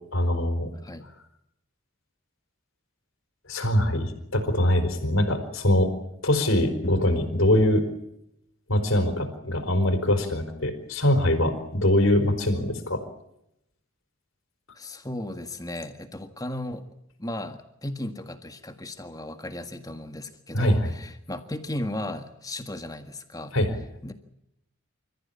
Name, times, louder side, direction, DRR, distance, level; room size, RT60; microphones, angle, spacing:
voice 1, 0.1-0.7 3.5-5.9 6.2-7.9 8.7-13.0 20.5-20.9 23.5-23.8, left 1 dB, 75° left, 7 dB, 4.4 m, -23 dB
voice 2, 14.7-16.8 17.2-23.5 24.0-24.1, left 1 dB, 15° left, 8 dB, 1.7 m, -35 dB
28.0 x 14.5 x 8.7 m, 0.81 s
head